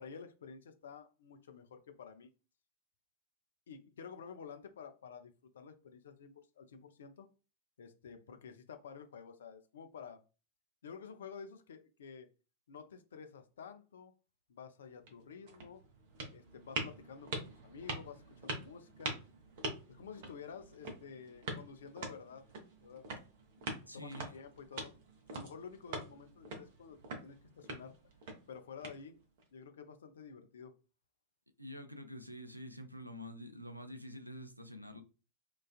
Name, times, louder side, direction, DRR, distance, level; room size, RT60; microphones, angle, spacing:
voice 1, 0.0-2.3 3.7-7.3 7.8-10.2 10.8-12.3 12.7-14.1 14.5-15.8 16.3-17.3 17.6-19.2 19.9-22.4 22.8-23.0 23.6-24.9 25.3-28.0 28.5-29.2 29.5-30.7, left 6 dB, 65° left, 0.4 m, -51 dB
sound 1, 14.9-29.4, right 2 dB, 50° right, 0.6 m, -45 dB
voice 2, 23.9-24.4 31.6-35.0, equal, 90° right, 0.3 m, -47 dB
2.3 x 2.3 x 2.3 m
figure-of-eight pair, 90°, 0 cm